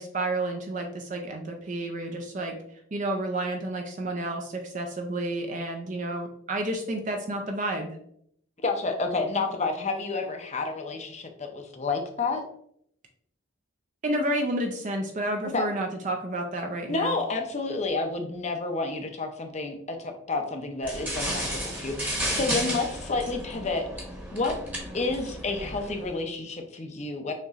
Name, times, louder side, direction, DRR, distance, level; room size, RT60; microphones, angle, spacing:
voice 1, 0.0-2.5 2.9-7.9 14.0-17.1, right 1 dB, 40° right, 3 dB, 0.5 m, -30 dB
voice 2, 8.6-12.4 15.5-15.7 16.9-23.9 24.3-24.6 24.9-27.3, left 3 dB, 35° left, 4 dB, 0.6 m, -30 dB
sound 1, 20.8-26.1, equal, 10° right, 1.0 m, -33 dB
6.3 x 3.0 x 2.4 m, 0.68 s
head